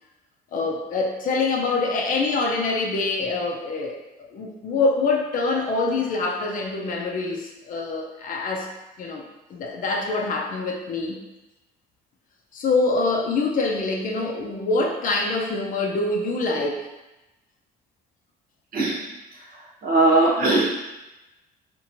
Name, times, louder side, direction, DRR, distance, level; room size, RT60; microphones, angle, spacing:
voice 1, 0.5-4.0 4.3-8.7 9.0-9.2 9.5-11.2 12.5-16.9, left 3 dB, 50° left, 0 dB, 0.6 m, -25 dB
voice 2, 19.8-20.6, right 2 dB, 60° right, -4 dB, 0.9 m, -19 dB
3.0 x 2.6 x 2.5 m, 1.0 s
cardioid pair, 110°, 17 cm